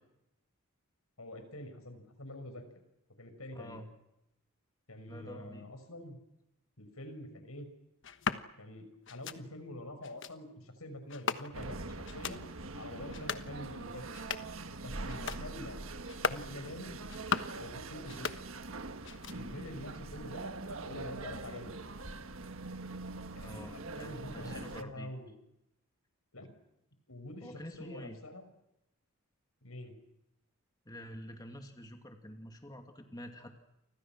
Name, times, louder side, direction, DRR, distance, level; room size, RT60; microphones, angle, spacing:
voice 1, 1.2-2.6 3.2-3.8 4.9-6.2 6.8-7.7 8.6-12.4 12.7-14.1 14.8-15.8 16.2-17.0 17.5-18.4 19.3-20.4 20.8-21.8 23.3-25.3 26.3-26.5 27.1-28.5 29.6-30.0, left 1 dB, 85° left, 8 dB, 6.0 m, -46 dB
voice 2, 3.5-3.9 5.1-5.7 23.4-25.1 27.4-28.2 30.9-33.6, equal, 20° left, 4 dB, 2.4 m, -48 dB
sound 1, 8.0-8.4 9.1-9.4 10.0-10.3 11.1-11.7 12.0-12.4 13.0-13.5 14.0-14.6 15.1-15.4 16.0-16.5 17.0-17.6 18.0-18.8 19.0-19.6, left 5 dB, 60° left, 1.3 m, -38 dB
sound 2, 11.5-24.8, right 3 dB, 70° right, 1.6 m, -43 dB
30.0 x 25.5 x 6.1 m, 0.87 s
head